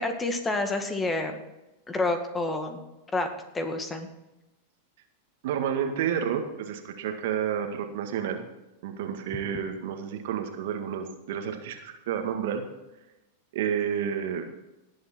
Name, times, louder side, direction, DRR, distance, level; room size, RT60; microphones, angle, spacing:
voice 1, 0.0-1.4 1.9-2.8 3.1-3.3 3.5-4.1, left 2 dB, 15° left, 6 dB, 2.0 m, -28 dB
voice 2, 5.4-8.4 8.8-12.6 13.5-14.5, right 8 dB, 60° right, 5 dB, 1.9 m, -30 dB
19.0 x 7.8 x 4.5 m, 0.96 s
hypercardioid pair, 95°, 0 cm